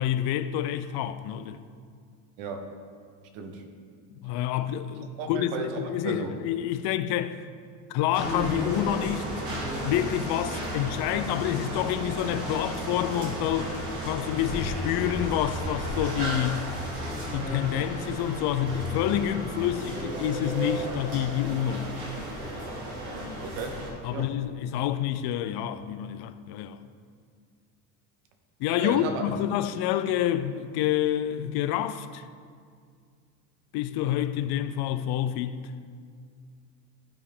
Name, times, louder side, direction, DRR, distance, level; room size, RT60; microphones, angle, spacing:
voice 1, 0.0-1.6 4.1-7.4 7.9-13.8 14.0-16.7 17.3-21.9 24.0-26.8 28.6-32.3 33.7-35.7, left 11 dB, 55° left, 0.6 m, -28 dB
voice 2, 2.4-2.7 3.3-3.6 5.2-6.5 23.4-24.3 28.8-29.4, right 4 dB, 65° right, 1.3 m, -34 dB
sound 1, 8.1-23.9, equal, 85° right, 2.3 m, -33 dB
14.0 x 4.7 x 3.6 m
hypercardioid pair, 80°, 49 cm